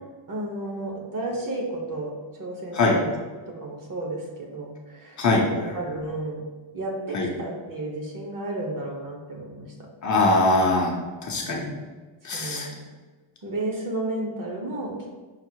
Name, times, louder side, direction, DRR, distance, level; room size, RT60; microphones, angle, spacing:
voice 1, 0.3-3.1 3.5-6.4 6.7-9.9 11.4-11.8 12.3-12.8 13.4-15.2, right 2 dB, 40° right, 0 dB, 1.0 m, -33 dB
voice 2, 10.0-11.7 12.2-12.7, left 2 dB, 35° left, -1 dB, 0.7 m, -22 dB
5.7 x 2.0 x 4.5 m, 1.3 s
cardioid pair, 135°, 50 cm